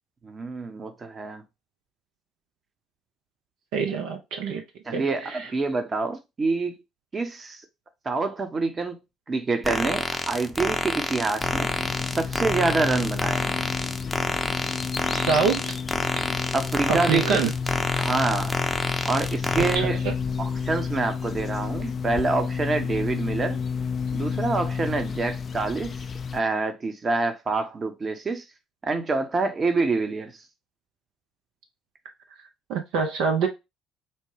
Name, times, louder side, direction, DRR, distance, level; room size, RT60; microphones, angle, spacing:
voice 1, 0.2-1.4 4.8-6.8 7.1-7.6 8.0-9.0 9.3-11.7 12.1-13.6 16.5-17.4 18.0-18.6 19.0-20.0 20.4-23.6 24.1-26.0 26.3-28.4 28.8-30.4, right 3 dB, 35° right, 0.9 m, -26 dB
voice 2, 3.7-4.6 4.9-5.0 5.3-5.4 15.1-15.6 16.9-17.5 19.7-19.9 32.7-33.5, right 5 dB, 65° right, 0.6 m, -24 dB
sound 1, 9.6-19.8, left 1 dB, 5° left, 0.7 m, -28 dB
sound 2, 11.4-26.4, left 6 dB, 40° left, 0.4 m, -30 dB
4.4 x 2.2 x 3.2 m
hypercardioid pair, 55°, 0 cm